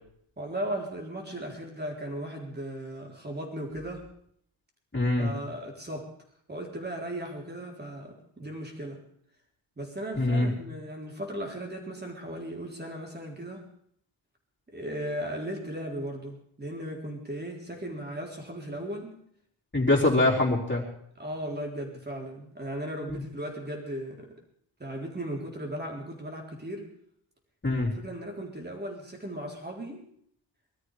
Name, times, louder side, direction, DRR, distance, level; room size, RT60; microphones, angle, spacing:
voice 1, 0.4-4.1 5.2-6.1 6.5-9.0 9.8-13.7 14.7-19.2 21.2-24.4 24.8-26.9 28.0-30.0, right 1 dB, 20° right, 1 dB, 3.8 m, -37 dB
voice 2, 4.9-5.3 10.1-10.5 19.7-20.8 23.1-23.2 27.6-27.9, left 2 dB, 25° left, -3 dB, 4.2 m, -24 dB
21.5 x 13.0 x 4.9 m, 0.69 s
wide cardioid pair, 135°, 49 cm